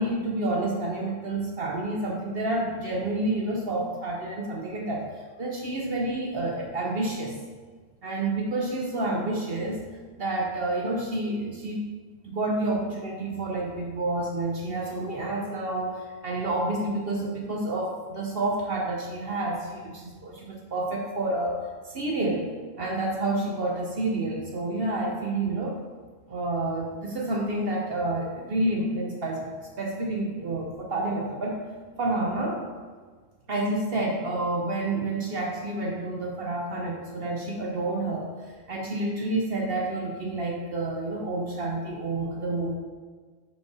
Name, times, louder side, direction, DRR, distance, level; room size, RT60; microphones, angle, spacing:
voice 1, 0.0-5.1 5.4-7.4 8.0-9.8 10.2-11.8 12.2-21.6 21.8-22.5 22.8-25.8 26.3-29.5 29.8-31.6 32.0-32.7 33.5-38.3 38.7-42.7, right 2 dB, 50° right, -1 dB, 0.8 m, -29 dB
5.1 x 4.3 x 4.7 m, 1.4 s
omnidirectional pair, 1.7 m